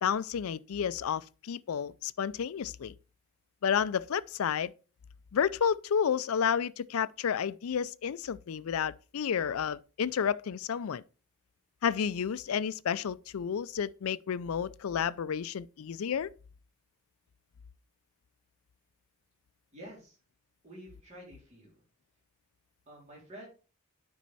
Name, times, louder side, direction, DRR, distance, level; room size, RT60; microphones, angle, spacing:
voice 1, 0.0-2.9 3.6-4.7 5.3-11.0 11.8-16.3, left 7 dB, 80° left, 0.4 m, -31 dB
voice 2, 19.7-20.2 20.6-21.8 22.8-23.5, equal, 30° right, 3.5 m, -49 dB
9.3 x 5.4 x 4.1 m
head